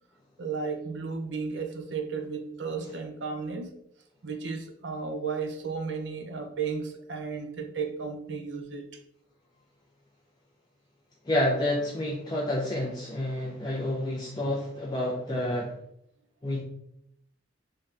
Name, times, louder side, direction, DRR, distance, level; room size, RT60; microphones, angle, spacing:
voice 1, 0.4-3.7 4.2-8.9, right 5 dB, 65° right, 0.6 m, -34 dB
voice 2, 11.2-15.7 16.4-16.6, left 1 dB, 20° left, 0.5 m, -29 dB
3.6 x 2.7 x 3.2 m
head